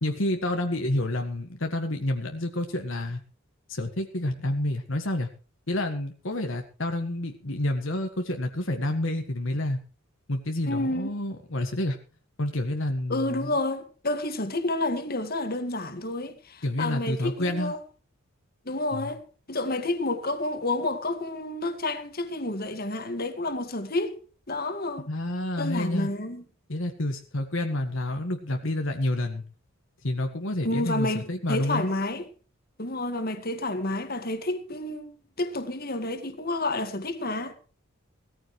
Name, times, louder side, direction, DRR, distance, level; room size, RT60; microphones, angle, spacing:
voice 1, 0.0-3.2 3.7-5.3 5.7-9.8 10.3-12.0 12.4-13.5 16.6-17.7 18.9-19.1 25.1-26.1 26.7-29.4 30.0-31.9, left 1 dB, 60° left, 1.7 m, -29 dB
voice 2, 10.7-11.1 13.1-17.8 18.7-19.2 19.5-24.2 24.5-25.1 25.6-26.4 30.6-32.3 32.8-37.5, left 2 dB, 45° left, 2.1 m, -30 dB
17.5 x 14.0 x 3.3 m
head